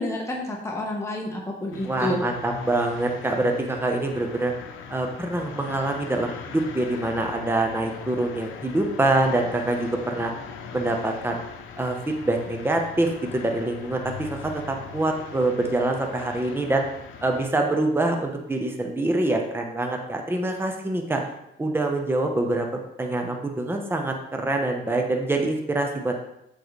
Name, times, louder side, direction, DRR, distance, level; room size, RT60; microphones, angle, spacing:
voice 1, 0.0-2.2, left 1 dB, 15° left, -1 dB, 1.2 m, -29 dB
sound 1, 1.7-17.5, left 6 dB, 85° left, 0.7 m, -40 dB
voice 2, 1.8-4.5 4.9-10.3 10.7-11.4 11.8-16.8 17.2-21.2 21.6-26.2, right 2 dB, 10° right, 2 dB, 0.9 m, -25 dB
7.6 x 3.9 x 3.2 m, 0.81 s
cardioid pair, 90°, 20 cm